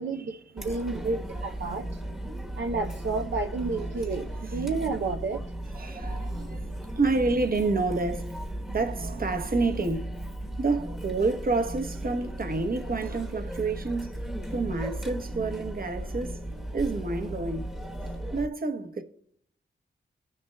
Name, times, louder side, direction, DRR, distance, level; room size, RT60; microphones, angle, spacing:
voice 1, 0.0-2.0 2.5-5.4, right 3 dB, 75° right, 0.6 m, -31 dB
Chatter, 0.6-18.5, right 1 dB, 5° right, 1.1 m, -36 dB
voice 2, 1.1-1.8 4.4-4.7 5.7-8.4 8.7-10.1 10.6-14.1 14.5-17.7 18.3-19.0, right 3 dB, 50° right, 1.0 m, -29 dB
19.0 x 6.5 x 2.2 m
cardioid pair, 50°, 20 cm